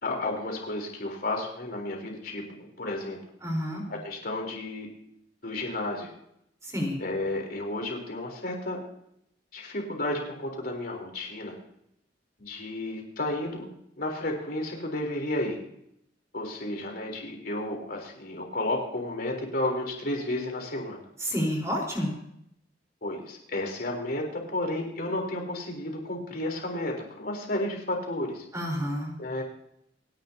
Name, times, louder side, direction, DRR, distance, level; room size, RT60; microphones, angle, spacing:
voice 1, 0.0-3.2 3.9-4.9 5.4-6.1 7.0-8.8 9.5-11.6 12.4-13.7 14.0-15.6 16.3-21.1 23.0-28.4 29.2-29.4, left 1 dB, 55° left, 1 dB, 3.8 m, -32 dB
voice 2, 3.4-3.8 6.6-7.0 21.2-22.1 28.5-29.1, equal, 15° right, 0 dB, 4.2 m, -29 dB
28.5 x 11.0 x 2.8 m, 0.75 s
head